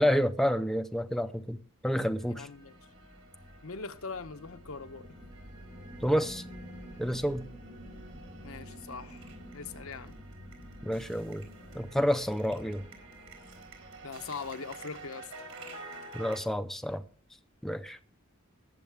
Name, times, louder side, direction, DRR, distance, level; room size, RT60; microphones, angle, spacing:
voice 1, 0.0-2.5 6.0-6.4 7.0-7.5 10.8-11.5 11.7-12.8 16.1-17.0 17.6-18.0, equal, ahead, 0.5 m, -29 dB
sound 1, 2.2-16.4, right 3 dB, 75° right, 4.3 m, -51 dB
voice 2, 2.3-2.8 3.6-5.1 8.4-10.2 14.0-15.3, left 5 dB, 80° left, 1.0 m, -41 dB
sound 2, 2.4-15.7, equal, 55° right, 3.3 m, -49 dB
20.5 x 7.6 x 3.5 m
head